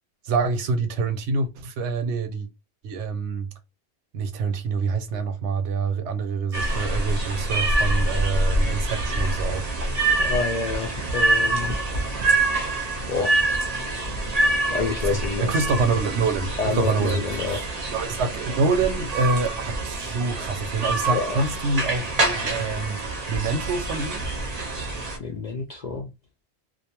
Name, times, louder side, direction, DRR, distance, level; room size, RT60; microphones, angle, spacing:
voice 1, 0.3-2.5 2.8-3.5 4.1-9.7 15.1-17.2 17.5-17.6 17.9-23.0 23.3-24.2, right 4 dB, 90° right, 0.9 m, -26 dB
sound 1, 6.5-25.2, right 2 dB, 45° right, 0.6 m, -26 dB
voice 2, 10.2-11.7 13.1-13.4 14.7-15.6 16.6-17.6 21.1-21.5 25.0-26.1, left 4 dB, 60° left, 0.5 m, -28 dB
2.3 x 2.2 x 2.8 m
omnidirectional pair, 1.1 m